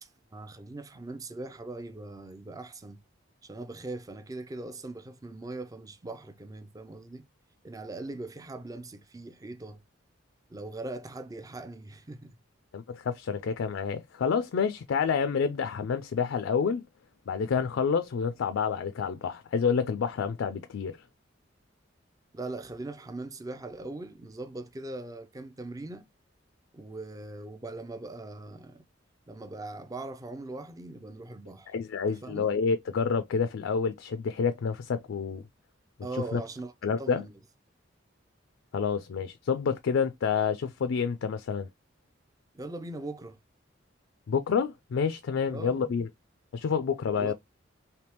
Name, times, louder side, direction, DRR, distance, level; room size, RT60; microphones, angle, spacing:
voice 1, 0.0-3.0 3.4-7.3 7.6-9.8 10.5-12.4 22.3-26.1 26.7-28.9 29.3-31.7 32.1-32.5 36.0-36.7 37.0-37.3 42.5-43.4 45.5-45.9 47.2-47.3, right 2 dB, 20° right, 0.4 m, -40 dB
voice 2, 12.7-16.8 17.3-21.0 31.7-35.4 36.3-36.4 36.8-37.2 38.7-41.7 44.3-46.1 46.5-47.3, left 6 dB, 75° left, 0.4 m, -28 dB
3.4 x 2.7 x 2.9 m
head